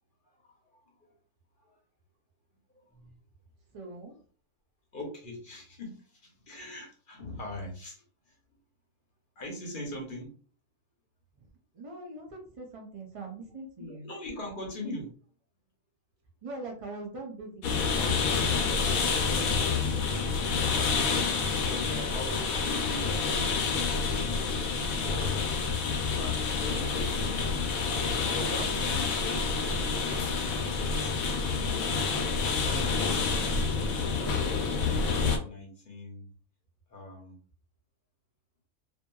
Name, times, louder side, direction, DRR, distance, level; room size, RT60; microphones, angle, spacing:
voice 1, 0.3-1.1 1.6-1.8 2.8-3.2 4.9-8.4 9.4-10.3 13.8-15.1 20.8-24.0 25.9-27.7 28.3-31.1 31.6-32.0 32.4-36.3 36.9-37.4, left 1 dB, 45° left, 0 dB, 0.8 m, -42 dB
voice 2, 3.7-4.1 11.4-11.5 11.7-14.1 16.4-21.0, right 2 dB, 45° right, 1 dB, 0.4 m, -43 dB
sound 1, 17.6-35.4, left 5 dB, 80° left, 1.0 m, -28 dB
2.7 x 2.6 x 2.2 m, 0.43 s
omnidirectional pair, 1.4 m